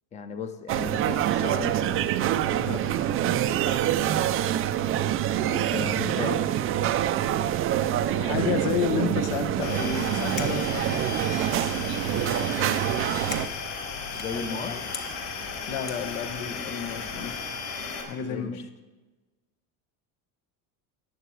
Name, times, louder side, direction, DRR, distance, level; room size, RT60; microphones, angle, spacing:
voice 1, 0.1-2.0 5.5-6.4 14.1-14.7 18.2-18.6, left 5 dB, 15° left, 9 dB, 0.6 m, -35 dB
sound 1, 0.7-13.5, right 11 dB, 35° right, 0.4 m, -26 dB
voice 2, 8.2-11.0 14.3-14.8 15.7-17.4 18.1-18.6, left 7 dB, 80° left, 8 dB, 1.4 m, -31 dB
sound 2, 9.6-18.0, left 5 dB, 60° left, 4.5 m, -35 dB
sound 3, 10.1-11.3 11.9-12.4 12.6-12.8 13.0-14.5 14.9-15.1 15.9-16.2, left 7 dB, 40° left, 1.2 m, -41 dB
14.5 x 10.0 x 4.6 m, 1.2 s
cardioid pair, 160°, 42 cm